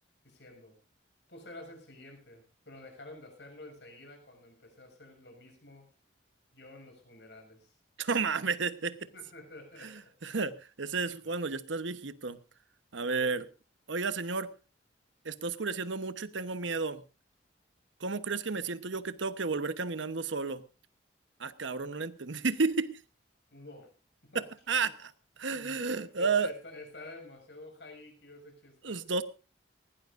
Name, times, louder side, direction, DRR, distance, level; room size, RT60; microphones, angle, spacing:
voice 1, 0.2-0.8 1.3-5.9 6.5-7.8 9.1-10.0 11.2-11.4 13.1-13.4 23.5-23.9 24.2-24.9 25.5-29.0, left 2 dB, 65° left, 4 dB, 6.6 m, -50 dB
voice 2, 8.0-9.0 9.8-9.9 10.2-12.4 12.9-13.5 13.9-14.5 15.2-17.0 18.0-20.6 21.4-23.0 24.3-25.1 25.4-26.5 28.8-29.2, right 4 dB, 80° right, 12 dB, 1.0 m, -32 dB
20.0 x 17.0 x 2.6 m, 0.33 s
head